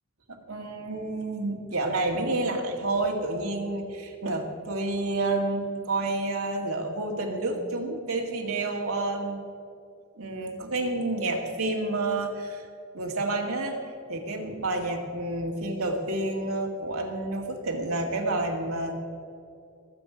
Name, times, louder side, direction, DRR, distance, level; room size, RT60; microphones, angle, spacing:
voice 1, 0.5-9.4 10.2-12.7 12.9-13.8 14.1-18.9, right 2 dB, 85° right, 2 dB, 2.0 m, -29 dB
20.0 x 8.0 x 5.0 m, 2.4 s
head